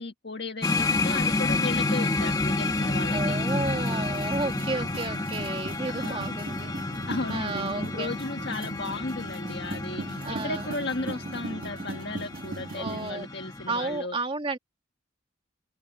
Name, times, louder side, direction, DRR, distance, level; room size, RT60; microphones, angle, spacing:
voice 1, 0.0-3.4 5.9-6.4 7.1-14.2, left 3 dB, 60° left, 1.6 m, -35 dB
sound 1, 0.6-14.0, left 2 dB, 20° left, 1.7 m, -30 dB
sound 2, 2.6-13.1, right 2 dB, 50° right, 1.6 m, -40 dB
voice 2, 3.1-6.7 7.3-8.1 10.2-10.8 12.7-13.3 13.7-14.6, right 3 dB, 30° right, 2.0 m, -32 dB
head